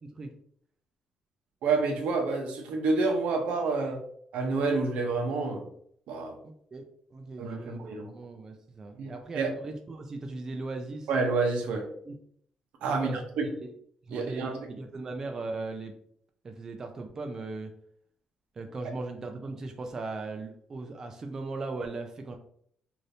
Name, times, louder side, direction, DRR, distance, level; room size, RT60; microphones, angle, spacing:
voice 1, 1.6-4.0 4.3-5.7 6.1-6.4 7.4-8.1 9.0-9.5 11.1-11.9 12.8-13.5 14.1-14.7 18.8-18.9, right 3 dB, 85° right, 3 dB, 0.7 m, -29 dB
voice 2, 6.4-6.8 7.1-11.1 12.1-12.2 12.9-13.2 13.6-13.7 14.1-16.0 16.4-17.7 18.6-22.4, right 3 dB, 25° right, 4 dB, 0.3 m, -38 dB
2.6 x 2.6 x 3.2 m, 0.64 s
cardioid pair, 165°, 2 cm